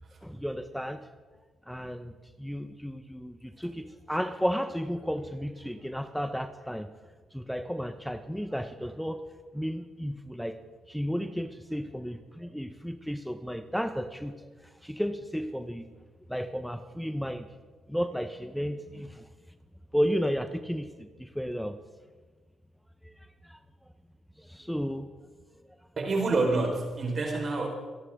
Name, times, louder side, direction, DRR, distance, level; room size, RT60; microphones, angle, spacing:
voice 1, 0.2-1.0 1.7-2.1 2.4-6.9 7.3-9.2 9.5-10.6 10.9-14.5 14.8-15.8 16.3-17.5 17.9-19.2 19.9-21.7 23.0-23.1 23.5-23.6 24.4-25.1, equal, ahead, 9 dB, 1.1 m, -33 dB
voice 2, 26.0-27.7, right 3 dB, 50° right, 1 dB, 5.0 m, -27 dB
27.5 x 11.0 x 3.9 m, 1.3 s
supercardioid pair, 55°, 0 cm